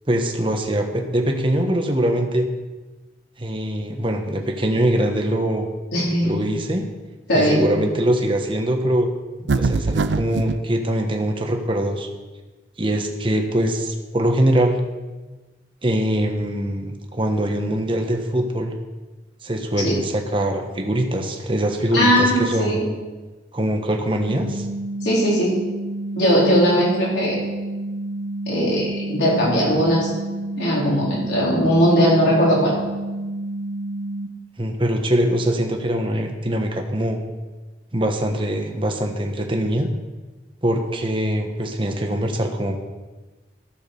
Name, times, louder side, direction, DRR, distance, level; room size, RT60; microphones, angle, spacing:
voice 1, 0.1-2.5 3.4-5.7 6.2-6.8 7.3-9.1 9.6-12.1 12.8-14.8 15.8-18.7 19.4-22.8 23.5-24.7 34.6-37.2 37.9-39.9 40.6-42.7, right 1 dB, 30° right, 3 dB, 1.3 m, -22 dB
voice 2, 5.9-6.4 7.3-7.7 19.8-19.9 21.9-22.9 25.0-25.5 26.2-27.4 28.5-30.1 30.6-32.7, equal, 70° left, -6 dB, 4.2 m, -19 dB
sound 1, 9.5-10.6, right 4 dB, 80° right, 0.5 m, -22 dB
sound 2, 24.3-34.3, right 1 dB, 60° right, 0.9 m, -29 dB
14.5 x 6.4 x 6.9 m, 1.2 s
head